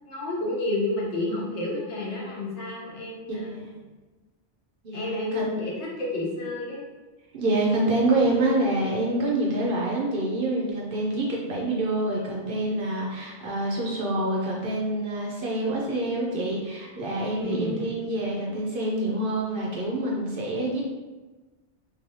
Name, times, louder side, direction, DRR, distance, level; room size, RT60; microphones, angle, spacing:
voice 1, 0.1-3.6 4.9-6.8 17.4-17.9, left 2 dB, 70° left, -4 dB, 1.1 m, -30 dB
voice 2, 3.3-3.8 4.8-5.5 7.3-20.8, right 1 dB, 55° right, -3 dB, 0.7 m, -26 dB
3.2 x 2.6 x 2.7 m, 1.2 s
omnidirectional pair, 1.2 m